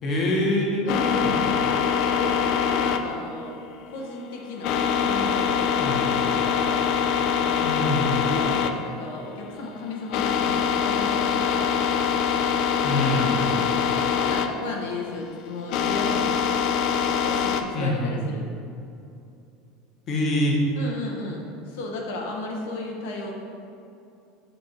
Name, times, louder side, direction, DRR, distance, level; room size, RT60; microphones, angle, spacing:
voice 1, 0.0-0.9 1.1-1.3 5.8-6.1 7.6-8.3 12.8-13.5 17.7-18.2 20.1-20.6, left 1 dB, 30° left, -2 dB, 1.1 m, -25 dB
voice 2, 0.8-3.6 3.9-6.8 7.2-7.8 8.2-11.7 13.1-16.4 17.2-18.4 20.8-23.3, left 2 dB, 90° left, 0 dB, 1.0 m, -34 dB
sound 1, 0.9-17.6, left 7 dB, 45° left, 0.4 m, -24 dB
8.3 x 3.0 x 5.8 m, 2.6 s
cardioid pair, 165°, 0 cm